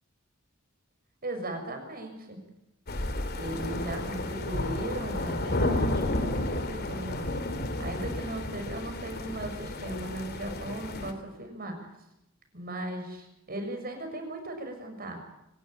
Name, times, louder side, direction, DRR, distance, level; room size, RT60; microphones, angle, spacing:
voice 1, 1.2-2.4 3.3-7.4 7.8-11.9 12.5-15.2, right 1 dB, 45° right, 5 dB, 6.5 m, -37 dB
sound 1, 2.9-11.1, left 1 dB, 50° left, 2.7 m, -32 dB
27.0 x 14.5 x 9.9 m, 0.86 s
head